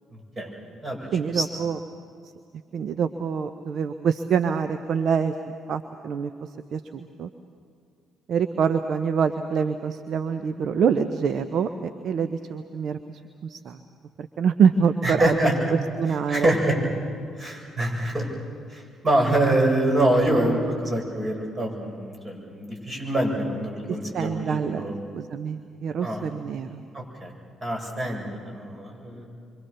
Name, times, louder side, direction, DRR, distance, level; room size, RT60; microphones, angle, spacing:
voice 1, 1.1-1.8 2.7-7.3 8.3-13.8 14.2-15.3 15.7-16.5 23.9-24.9 25.1-26.8, right 6 dB, 55° right, 9 dB, 0.9 m, -26 dB
voice 2, 15.0-15.5 16.3-16.8 17.4-18.3 18.7-25.1 26.0-26.2 26.9-27.3 27.6-29.3, right 1 dB, 30° right, 0 dB, 7.8 m, -25 dB
28.0 x 25.0 x 6.9 m, 2.3 s
figure-of-eight pair, 45°, 0 cm